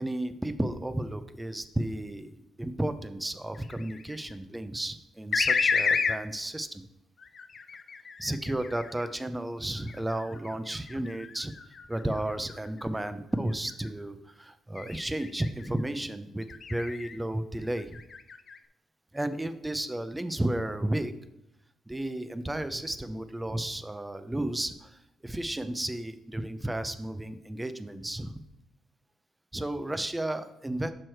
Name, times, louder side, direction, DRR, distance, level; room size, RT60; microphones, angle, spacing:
voice 1, 0.0-6.8 8.2-11.5 11.9-18.0 19.1-21.1 21.9-28.3 29.5-30.9, right 1 dB, 10° right, 11 dB, 0.5 m, -33 dB
sound 1, 3.6-4.3 5.3-6.2 7.2-9.1 9.8-13.1 13.5-13.9 14.8-15.7 16.4-17.2 17.6-18.6, left 5 dB, 45° left, 0.4 m, -32 dB
6.1 x 4.7 x 4.4 m, 0.83 s
cardioid pair, 90°, 0 cm